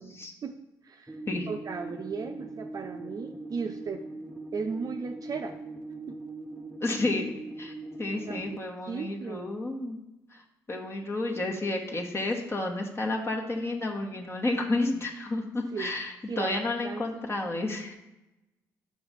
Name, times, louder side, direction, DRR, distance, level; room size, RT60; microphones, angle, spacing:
voice 1, 0.0-1.2 1.5-4.0 4.5-5.6 6.1-6.2 8.3-9.5 15.7-16.0 16.3-17.1, right 5 dB, 45° right, 5 dB, 0.6 m, -36 dB
sound 1, 1.1-8.6, right 2 dB, 5° right, 0.6 m, -41 dB
voice 2, 6.8-7.7 8.0-10.0 10.3-10.4 10.7-18.0, left 2 dB, 30° left, 0 dB, 1.2 m, -31 dB
5.4 x 4.7 x 5.0 m, 0.96 s
hypercardioid pair, 55°, 8 cm